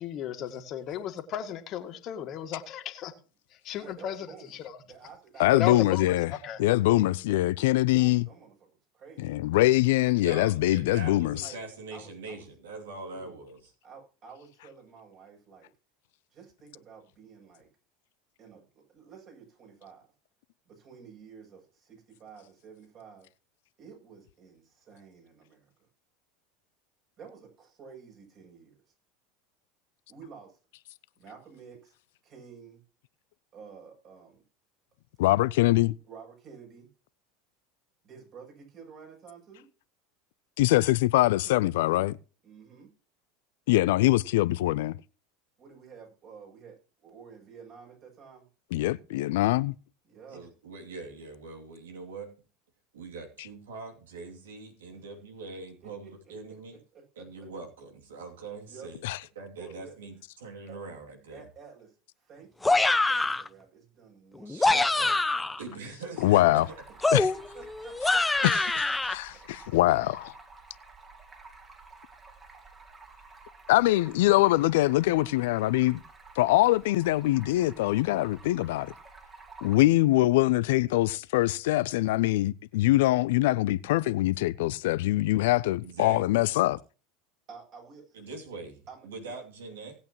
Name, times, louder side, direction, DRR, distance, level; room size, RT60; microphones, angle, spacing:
voice 1, 0.0-3.1 3.5-4.8 5.5-6.6, left 9 dB, 45° left, 2.0 m, -35 dB
voice 2, 3.8-4.6 4.9-6.3 6.7-7.1 7.8-8.7 8.9-9.4 11.0-11.6 11.9-12.5 13.1-13.4 13.8-15.7 16.3-17.7 18.4-20.1 20.7-23.3 23.8-25.7 27.2-28.8 30.1-30.6 31.2-32.0 32.2-32.8 33.5-34.4 36.0-36.9 38.0-39.7 42.4-42.9 45.6-48.5 50.0-50.5 55.8-56.5 56.9-57.3 58.7-58.9 59.6-59.9 60.7-60.8 61.3-65.3 66.6-66.7 67.3-68.5 69.1-69.5 87.5-88.2 88.9-89.3, right 6 dB, 45° right, 7.7 m, -51 dB
voice 3, 5.4-6.3 6.6-8.3 9.2-11.4 35.2-35.9 40.6-42.2 43.7-45.0 48.7-49.7 59.0-59.2 66.2-66.7 67.1-67.3 68.4-68.6 69.0-70.3 73.7-76.0 76.4-78.9 79.6-86.8, left 17 dB, 65° left, 0.5 m, -23 dB
voice 4, 10.2-13.7 50.3-52.3 52.9-56.8 57.2-59.0 59.3-61.5 64.4-65.1 65.6-66.8 85.8-86.4 88.1-90.0, right 3 dB, 75° right, 2.7 m, -42 dB
sound 1, 62.6-63.5 64.4-65.6 67.0-69.1, left 2 dB, 10° left, 0.7 m, -25 dB
Stream, 66.2-79.8, right 3 dB, 25° right, 3.3 m, -51 dB
18.5 x 8.7 x 3.0 m
hypercardioid pair, 80°, 0 cm